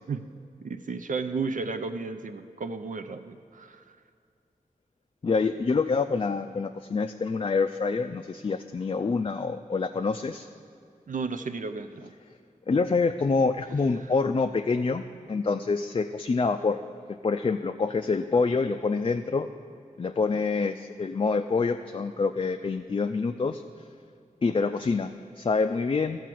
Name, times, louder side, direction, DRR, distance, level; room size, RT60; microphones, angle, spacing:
voice 1, 0.6-4.0 11.1-12.1, right 4 dB, 65° right, 8 dB, 0.4 m, -33 dB
voice 2, 5.2-10.5 12.7-16.8 17.2-19.5 20.0-23.6 24.4-26.2, left 4 dB, 40° left, 7 dB, 0.4 m, -26 dB
12.5 x 4.6 x 7.6 m, 2.5 s
wide cardioid pair, 60°, 14 cm